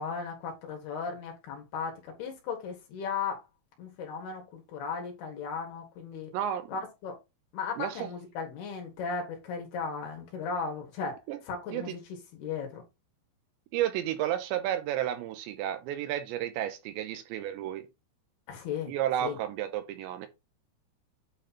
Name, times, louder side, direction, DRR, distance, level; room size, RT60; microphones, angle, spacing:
voice 1, 0.0-3.4 3.8-6.3 6.7-7.2 7.5-12.0 12.3-12.8 18.5-18.9 19.2-19.4, left 5 dB, 65° left, 3.4 m, -36 dB
voice 2, 6.3-6.7 7.8-8.1 11.3-11.4 11.7-11.9 13.7-17.9 18.9-20.3, right 11 dB, 80° right, 2.9 m, -32 dB
9.1 x 3.2 x 4.2 m
omnidirectional pair, 5.4 m